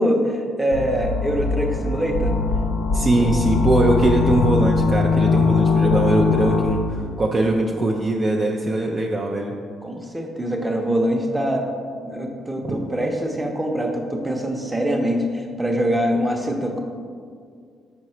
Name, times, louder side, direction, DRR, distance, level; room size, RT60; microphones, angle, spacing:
voice 1, 0.0-2.3 3.2-3.3 5.8-6.0 9.8-11.6 12.0-16.8, equal, 10° right, 2 dB, 0.8 m, -24 dB
sound 1, 0.7-7.0, left 4 dB, 85° left, 0.5 m, -21 dB
voice 2, 2.9-9.6 12.6-12.8, right 2 dB, 35° right, 0 dB, 0.5 m, -21 dB
5.2 x 4.9 x 4.4 m, 2.1 s
cardioid pair, 90°, 0 cm